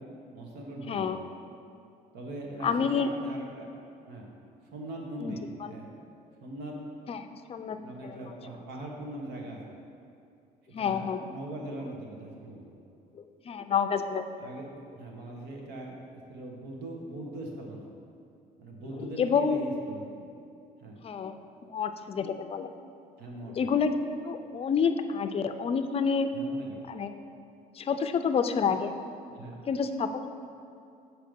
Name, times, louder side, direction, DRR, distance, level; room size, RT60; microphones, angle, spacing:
voice 1, 0.3-1.1 2.1-3.7 4.1-4.3 4.7-6.0 6.4-7.1 7.5-9.6 10.8-12.7 14.4-17.9 18.6-20.3 20.8-21.0 23.2-23.7 26.3-26.8 29.4-29.7, right 1 dB, 80° right, -1 dB, 1.3 m, -41 dB
voice 2, 0.9-1.2 2.6-3.1 5.2-5.7 7.1-7.8 8.0-8.2 10.7-11.3 13.2-14.3 19.0-19.6 21.0-21.4 21.7-22.7 23.6-26.3 26.9-27.1 27.8-28.9 29.7-30.3, left 6 dB, 35° left, 9 dB, 0.4 m, -29 dB
7.5 x 4.7 x 5.2 m, 2.5 s
cardioid pair, 110°, 17 cm